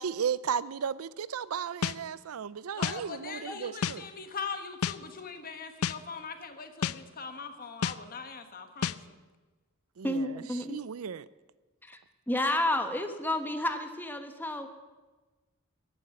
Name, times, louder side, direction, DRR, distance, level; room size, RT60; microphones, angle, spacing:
voice 1, 0.0-4.1 10.0-11.3, right 7 dB, 85° right, 0.5 m, -35 dB
sound 1, 1.8-2.0 2.8-3.0 3.8-4.0 4.8-5.0 5.8-6.0 6.8-7.0 7.8-8.0 8.8-9.0, left 7 dB, 90° left, 0.5 m, -29 dB
voice 2, 2.7-9.2, left 5 dB, 45° left, 1.4 m, -41 dB
voice 3, 10.0-10.8 11.9-12.0 12.3-14.7, left 1 dB, 10° left, 1.1 m, -30 dB
14.0 x 9.0 x 9.1 m
head